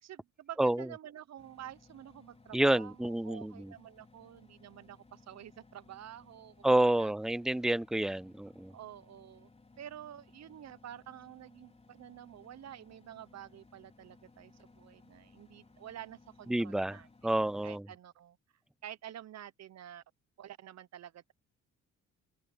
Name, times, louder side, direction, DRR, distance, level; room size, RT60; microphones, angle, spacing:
voice 1, 0.0-6.7 7.0-7.1 8.7-9.5 9.8-18.4 18.8-20.0 20.4-21.3, right 11 dB, 60° right, 1.0 m, -49 dB
Engine, 1.4-17.8, left 3 dB, 20° left, 4.2 m, -61 dB
voice 2, 2.5-3.7 6.6-8.7 16.5-17.0 17.2-17.8, right 1 dB, ahead, 0.3 m, -29 dB
open air
cardioid pair, 90°, 30 cm